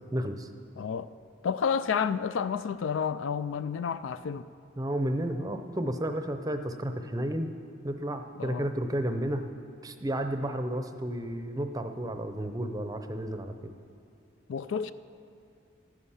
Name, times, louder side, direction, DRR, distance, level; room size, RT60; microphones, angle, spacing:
voice 1, 0.1-0.5 4.8-7.5 7.8-9.5 9.8-13.8, right 1 dB, 20° right, 7 dB, 0.6 m, -32 dB
voice 2, 0.8-1.1 1.4-4.5 8.4-8.7 14.5-14.9, left 6 dB, 75° left, 14 dB, 0.4 m, -30 dB
14.0 x 9.9 x 5.7 m, 2.4 s
head